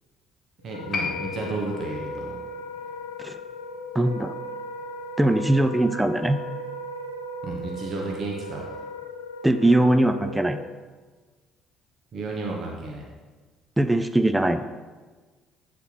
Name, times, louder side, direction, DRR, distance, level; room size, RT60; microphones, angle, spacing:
Wind instrument woodwind instrument, 0.6-10.7, equal, 80° left, 0.4 m, -37 dB
voice 1, 0.6-2.4 7.4-8.7 12.1-13.0, right 2 dB, 45° right, -1 dB, 0.9 m, -32 dB
Piano, 0.9-8.1, left 5 dB, 45° left, 0.9 m, -39 dB
voice 2, 3.9-4.4 5.2-6.4 9.4-10.6 13.8-14.7, right 1 dB, 10° right, 10 dB, 0.4 m, -21 dB
8.0 x 4.1 x 2.9 m, 1.3 s
figure-of-eight pair, 50°, 0 cm